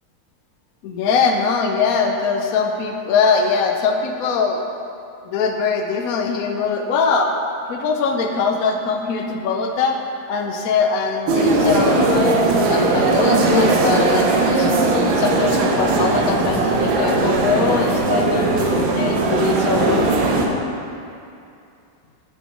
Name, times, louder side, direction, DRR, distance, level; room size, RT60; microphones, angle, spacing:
voice 1, 0.8-4.6 5.2-7.4 7.7-10.0 10.3-12.4 12.7-20.1, left 5 dB, 85° left, 3 dB, 0.7 m, -21 dB
sound 1, 11.3-20.5, right 2 dB, 75° right, 1.5 m, -18 dB
6.2 x 5.7 x 5.7 m, 2.5 s
omnidirectional pair, 2.2 m